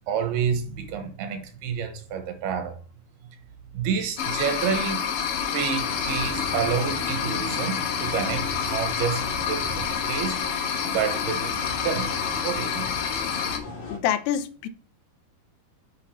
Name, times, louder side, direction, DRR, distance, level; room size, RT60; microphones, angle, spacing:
voice 1, 0.1-2.8 3.7-5.1 5.5-10.4 10.9-11.5 11.8-12.9 13.1-13.3, right 7 dB, 75° right, 3.2 m, -29 dB
sound 1, 4.2-13.6, left 7 dB, 65° left, 2.6 m, -28 dB
sound 2, 5.8-14.0, left 3 dB, 45° left, 3.3 m, -37 dB
voice 2, 13.9-14.7, left 10 dB, 85° left, 2.9 m, -26 dB
8.3 x 6.3 x 4.2 m
omnidirectional pair, 4.7 m